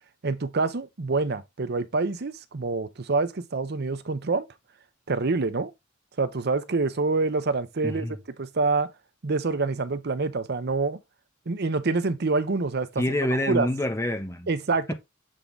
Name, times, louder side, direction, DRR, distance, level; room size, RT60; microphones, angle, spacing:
voice 1, 0.2-4.5 5.1-5.7 6.2-8.1 8.4-8.9 9.2-11.0 11.5-13.0 13.5-13.7 14.5-14.9, right 3 dB, 55° right, 0.7 m, -26 dB
voice 2, 7.8-8.2 13.0-14.5 14.9-15.0, left 1 dB, 15° left, 1.0 m, -27 dB
7.4 x 3.9 x 3.4 m
head